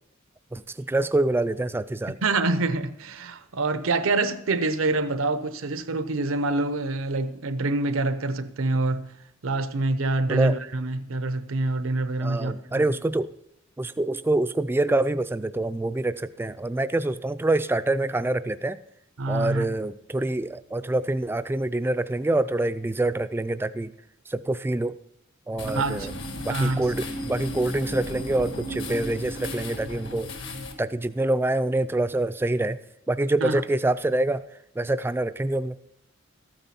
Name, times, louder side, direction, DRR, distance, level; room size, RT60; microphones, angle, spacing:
voice 1, 0.5-2.2 10.3-10.6 12.2-13.3 13.8-18.8 19.3-23.9 24.3-24.9 25.5-26.1 26.4-30.3 30.8-32.8 33.1-34.4 34.8-35.8, right 2 dB, 10° right, 0.3 m, -26 dB
voice 2, 2.2-9.1 9.4-12.9 19.2-19.6 25.7-26.1 26.5-26.9 33.4-33.6, right 2 dB, 90° right, 0.8 m, -26 dB
sound 1, 25.6-30.7, left 1 dB, 65° left, 1.5 m, -35 dB
13.5 x 8.9 x 4.3 m
head